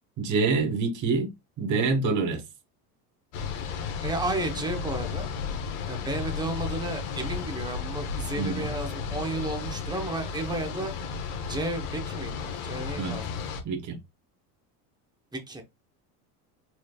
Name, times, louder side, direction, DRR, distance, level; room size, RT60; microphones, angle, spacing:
voice 1, 0.2-2.4 8.4-8.7 13.0-13.2 13.6-14.0, right 4 dB, 40° right, 1.2 m, -26 dB
sound 1, 3.3-13.6, left 5 dB, 75° left, 1.3 m, -33 dB
voice 2, 4.0-5.3 5.8-10.9 11.5-13.4 15.3-15.6, right 2 dB, 10° right, 0.9 m, -33 dB
4.5 x 3.2 x 2.3 m
supercardioid pair, 110°, 45 cm